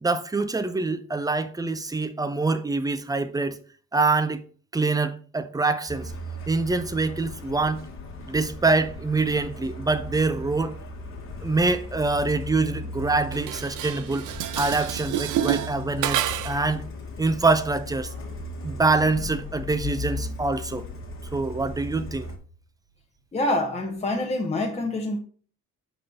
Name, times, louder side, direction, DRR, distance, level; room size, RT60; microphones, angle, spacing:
voice 1, 0.0-3.6 3.9-4.4 4.7-6.1 6.5-7.9 8.2-10.8 11.4-14.3 14.6-16.8 17.2-18.1 18.6-20.8 21.3-22.3, right 3 dB, 10° right, 0.6 m, -25 dB
Truck, 5.9-22.4, left 2 dB, 45° left, 1.4 m, -37 dB
Dishes pots and pans, 13.3-16.7, right 12 dB, 85° right, 0.5 m, -29 dB
voice 2, 23.3-25.2, left 1 dB, 20° left, 0.9 m, -26 dB
5.4 x 4.0 x 5.1 m
cardioid pair, 90°, 30 cm